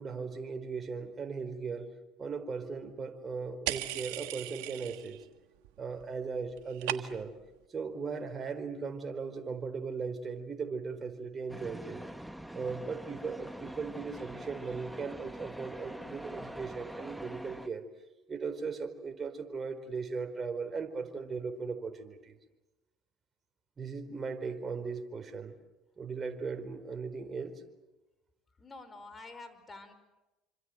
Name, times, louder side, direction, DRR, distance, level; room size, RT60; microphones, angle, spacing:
voice 1, 0.0-1.9 2.2-5.2 5.8-7.3 7.7-12.0 12.5-17.8 18.3-22.3 23.8-25.5 26.0-27.6, right 5 dB, 35° right, 6 dB, 4.4 m, -38 dB
sound 1, 3.7-5.3 5.5-6.1 6.3-7.4, right 17 dB, 75° right, 1.4 m, -38 dB
sound 2, 11.5-17.7, equal, 5° right, 1.5 m, -44 dB
voice 2, 28.6-29.9, left 3 dB, 25° left, 10 dB, 5.1 m, -48 dB
27.5 x 26.0 x 7.9 m, 1.0 s
hypercardioid pair, 70°, 0 cm